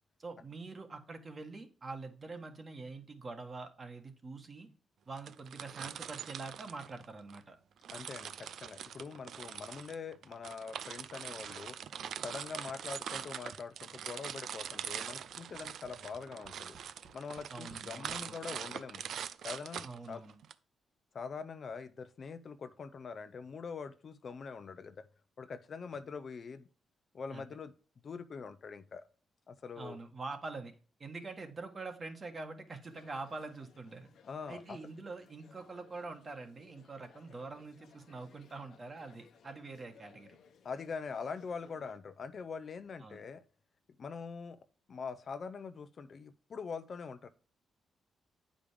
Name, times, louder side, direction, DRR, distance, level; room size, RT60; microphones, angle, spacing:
voice 1, 0.2-4.7 5.1-7.6 17.5-18.4 19.8-20.4 27.3-27.4 29.8-30.7 31.0-34.1 34.5-40.4 43.0-43.2, right 3 dB, 35° right, 6 dB, 1.5 m, -45 dB
sound 1, 5.2-7.4 7.8-20.5, right 8 dB, 75° right, 0.4 m, -43 dB
voice 2, 7.9-11.8 12.2-16.8 17.1-19.0 19.4-20.2 21.1-25.1 25.4-26.7 27.1-27.7 28.0-29.0 29.5-30.0 34.2-34.8 40.6-43.4 44.0-44.6 44.9-47.3, left 5 dB, 50° left, 11 dB, 0.6 m, -43 dB
Tap, 15.3-18.3 19.1-19.2 19.5-19.6, right 3 dB, 60° right, 1.6 m, -60 dB
sound 2, 32.8-42.0, left 7 dB, 70° left, 0.9 m, -62 dB
8.7 x 5.2 x 5.0 m, 0.38 s
cardioid pair, 105°, 0 cm